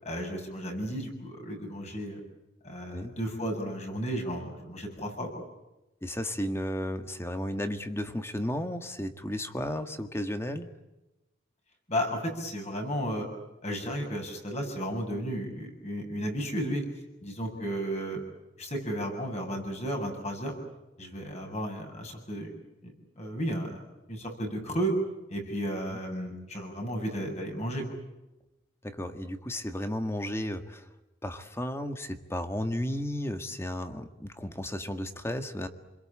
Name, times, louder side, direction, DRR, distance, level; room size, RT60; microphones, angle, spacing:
voice 1, 0.0-2.2 2.6-5.4 11.9-13.3 13.6-16.8 17.2-18.2 18.6-20.5 21.0-22.5 22.8-23.8 24.1-24.9 25.3-27.8, equal, 35° left, 3 dB, 7.6 m, -33 dB
voice 2, 6.0-10.7 25.9-26.0 28.8-30.8 31.2-35.7, equal, 15° left, 7 dB, 1.7 m, -33 dB
29.5 x 22.0 x 8.7 m, 1.0 s
head